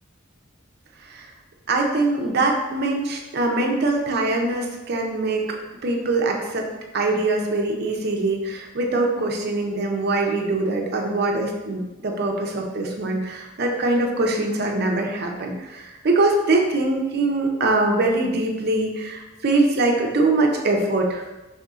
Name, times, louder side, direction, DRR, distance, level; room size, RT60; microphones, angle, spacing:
voice 1, 1.7-5.4 5.8-6.7 6.9-21.2, right 2 dB, 55° right, 1 dB, 0.6 m, -23 dB
5.5 x 2.7 x 3.6 m, 1.1 s
head